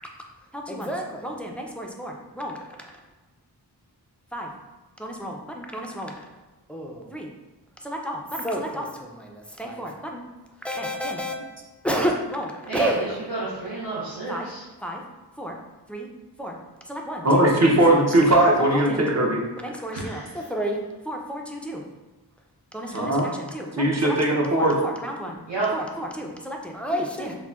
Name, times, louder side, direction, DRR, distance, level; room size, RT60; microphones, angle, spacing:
voice 1, 0.5-2.6 2.9-3.0 4.3-4.5 5.0-6.2 6.7-7.3 7.8-10.2 10.6-11.3 11.8-13.0 14.3-14.5 14.8-15.0 15.4-15.6 15.9-16.1 16.4-16.6 16.9-17.8 18.7-19.0 19.6-21.8 22.7-23.7 24.0-25.4 25.7-27.3, equal, 5° left, 0 dB, 0.3 m, -31 dB
voice 2, 12.7-14.6 19.9-20.3 22.9-23.0 25.5-25.7, right 3 dB, 80° right, -9 dB, 0.7 m, -30 dB
voice 3, 17.2-19.4 22.9-23.3 23.8-24.8, right 1 dB, 40° right, -2 dB, 0.6 m, -19 dB
3.9 x 2.0 x 2.3 m, 1.2 s
wide cardioid pair, 50°, 41 cm